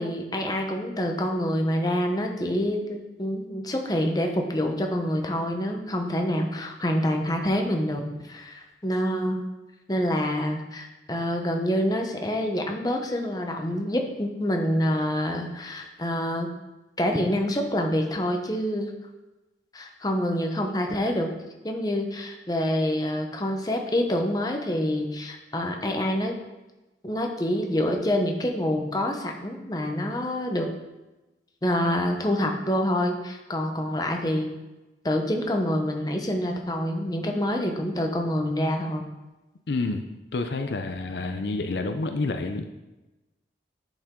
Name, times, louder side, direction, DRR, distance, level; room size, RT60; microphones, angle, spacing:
voice 1, 0.0-9.4 9.9-16.5 17.0-18.9 19.7-21.3 21.6-26.3 27.0-30.7 31.6-34.6 35.0-39.1, equal, 20° left, 3 dB, 0.8 m, -26 dB
voice 2, 39.7-40.1 40.3-42.7, left 3 dB, 70° left, 6 dB, 0.5 m, -28 dB
10.5 x 5.1 x 3.7 m, 1.1 s
head